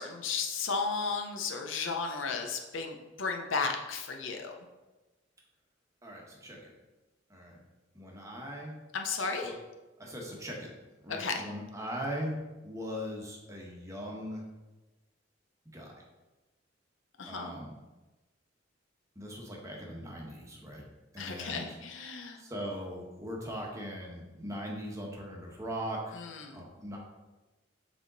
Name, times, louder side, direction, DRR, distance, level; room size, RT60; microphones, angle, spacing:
voice 1, 0.0-4.5 8.9-9.5 11.1-11.4 17.2-17.5 21.2-22.4 26.1-26.6, left 4 dB, 85° left, 4 dB, 0.7 m, -34 dB
voice 2, 6.0-6.7 7.3-7.6 7.9-8.7 9.4-9.5 10.0-10.7 11.0-12.4 12.6-14.4 15.7-15.9 17.3-17.7 19.2-20.8 21.1-21.8 22.4-26.0 26.5-27.0, equal, 15° right, -1 dB, 1.2 m, -40 dB
7.4 x 3.6 x 4.0 m, 1.1 s
head